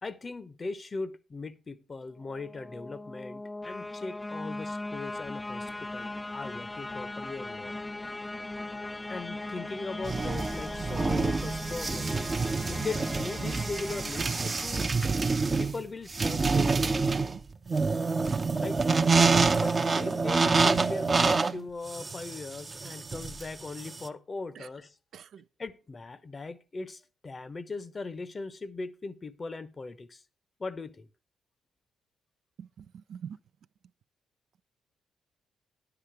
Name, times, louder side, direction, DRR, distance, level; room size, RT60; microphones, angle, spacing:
voice 1, 0.0-7.7 9.1-12.2 12.7-14.9 15.6-17.0 18.6-18.8 19.6-25.0 25.6-30.2 30.6-31.1, left 3 dB, 40° left, 0.8 m, -39 dB
sound 1, 2.2-15.2, left 2 dB, 20° left, 0.4 m, -39 dB
sound 2, 10.0-24.1, right 4 dB, 35° right, 0.7 m, -27 dB
voice 2, 25.1-25.4 32.6-32.8 33.1-33.4, right 8 dB, 65° right, 0.4 m, -43 dB
9.8 x 6.9 x 4.7 m
hypercardioid pair, 45°, 0 cm